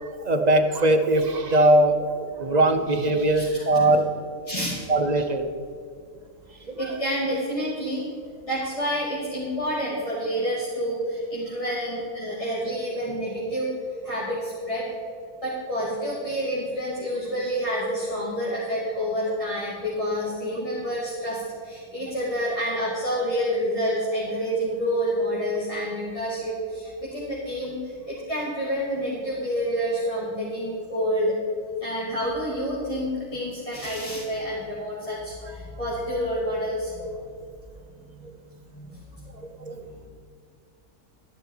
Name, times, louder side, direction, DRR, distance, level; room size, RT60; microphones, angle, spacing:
voice 1, 0.0-4.0 4.9-5.4 6.7-7.0 14.0-14.1 37.0-37.1 39.6-39.8, right 1 dB, 45° right, 6 dB, 0.6 m, -21 dB
voice 2, 3.4-3.9 4.5-4.7 6.6-8.1 8.5-13.7 14.0-14.9 15.4-27.8 28.1-31.3 31.8-36.9 38.1-38.3 38.7-38.9 39.6-39.7, equal, 20° left, -8 dB, 2.3 m, -28 dB
13.0 x 11.0 x 4.6 m, 2.2 s
omnidirectional pair, 1.6 m